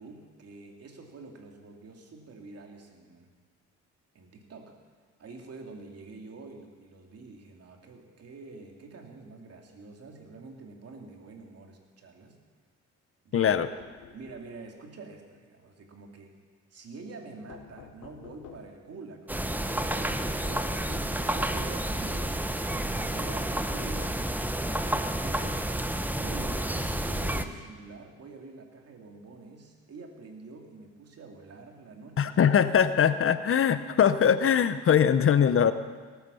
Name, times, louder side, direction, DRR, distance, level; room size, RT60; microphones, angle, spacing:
voice 1, 0.0-3.3 4.1-4.7 5.2-12.4 13.2-13.6 14.1-16.3 16.7-21.0 21.3-22.4 22.7-24.2 24.9-25.6 26.2-32.6, right 3 dB, 55° right, 2 dB, 2.7 m, -46 dB
voice 2, 13.3-13.7 32.2-35.7, left 8 dB, 45° left, 12 dB, 0.7 m, -22 dB
sound 1, 13.8-14.5 17.5-18.8 20.5-21.7, left 9 dB, 85° left, 1.1 m, -49 dB
sound 2, 19.3-27.5, right 1 dB, 5° right, 0.8 m, -30 dB
17.5 x 9.4 x 7.0 m, 1.5 s
cardioid pair, 90°, 30 cm